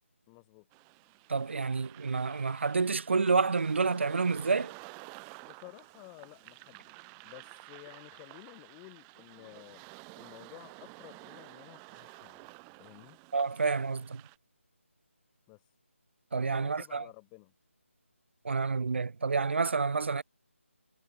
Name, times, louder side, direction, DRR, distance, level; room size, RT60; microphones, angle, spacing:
voice 1, 0.3-0.7 5.4-7.0 7.2-9.9 10.2-13.2 15.5-15.6 16.4-17.5, left 40 dB or more, 15° left, 4.1 m, -53 dB
sound 1, 0.7-14.4, right 40 dB or more, 10° right, 0.5 m, -52 dB
voice 2, 1.3-4.7 13.3-14.2 16.3-17.0 18.4-20.2, right 4 dB, 55° right, 1.0 m, -29 dB
figure-of-eight pair, 160°, 7 cm